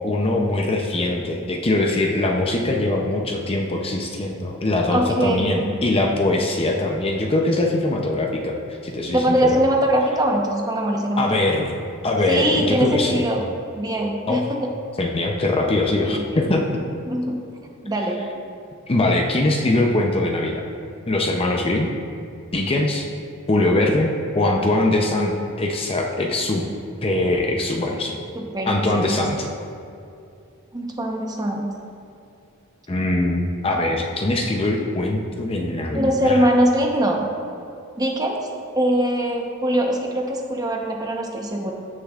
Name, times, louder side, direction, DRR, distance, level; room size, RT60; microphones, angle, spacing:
voice 1, 0.0-9.6 11.2-11.7 12.0-13.3 14.3-14.5 15.0-16.6 18.9-20.6 21.1-21.9 22.5-23.1 23.5-26.6 27.0-28.2 28.7-29.4 32.9-36.5, left 2 dB, 25° left, 1 dB, 0.6 m, -22 dB
voice 2, 4.9-5.5 9.1-11.4 12.3-13.4 13.7-14.7 16.1-16.4 17.1-17.4 17.8-18.2 28.3-28.8 29.1-29.2 30.7-31.7 35.9-37.2 38.0-38.5 38.7-41.7, right 1 dB, 20° right, 0 dB, 0.9 m, -22 dB
16.0 x 6.7 x 2.4 m, 2.5 s
head